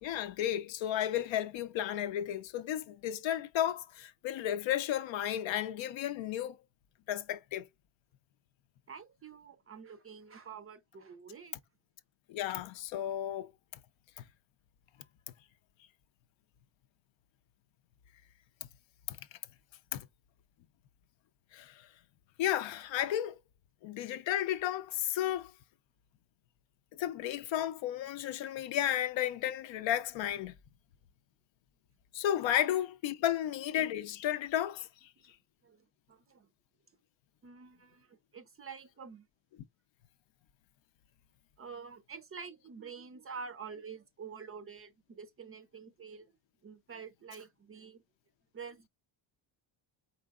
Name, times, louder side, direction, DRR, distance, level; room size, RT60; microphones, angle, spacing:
voice 1, 0.0-6.6 7.1-7.6 12.3-13.5 19.1-19.2 19.9-20.1 21.5-21.9 22.4-23.4 23.8-25.5 27.0-30.5 32.1-34.9, left 11 dB, 65° left, 0.6 m, -33 dB
voice 2, 8.9-11.6 35.2-35.3 35.6-36.5 37.4-39.3 41.6-46.3 46.6-48.0 48.5-48.9, right 6 dB, 30° right, 0.4 m, -48 dB
4.5 x 3.7 x 2.3 m
cardioid pair, 140°, 49 cm